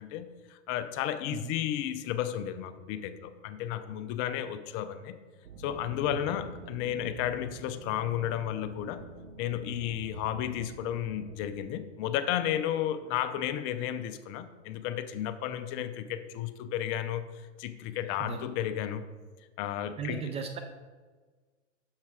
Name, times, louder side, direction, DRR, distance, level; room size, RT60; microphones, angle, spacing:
voice 1, 0.0-5.2 5.6-9.1 9.4-19.0 19.6-20.2, left 11 dB, 35° left, 0.6 m, -33 dB
sound 1, 5.4-11.5, right 3 dB, 90° right, 1.0 m, -47 dB
voice 2, 20.0-20.6, right 6 dB, 15° right, 0.4 m, -36 dB
7.3 x 6.6 x 4.7 m
hypercardioid pair, 115°, 37 cm